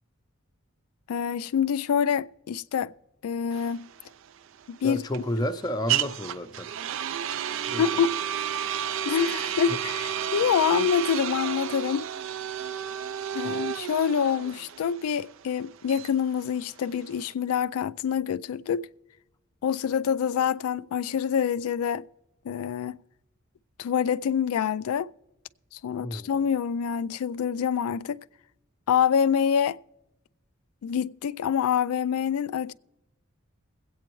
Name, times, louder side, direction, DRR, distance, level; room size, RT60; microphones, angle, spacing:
voice 1, 1.1-2.9 3.2-3.9 4.7-5.0 7.8-8.1 9.1-12.1 13.3-18.9 19.6-22.0 22.5-23.0 23.8-25.1 25.7-28.2 28.9-29.8 30.8-32.7, left 7 dB, 90° left, 0.3 m, -26 dB
sound 1, 3.5-17.3, right 10 dB, 60° right, 0.3 m, -32 dB
voice 2, 4.8-6.7 7.7-7.8 9.7-9.8 13.4-13.6 26.0-26.3, equal, 20° left, 0.5 m, -31 dB
22.0 x 8.4 x 3.0 m
head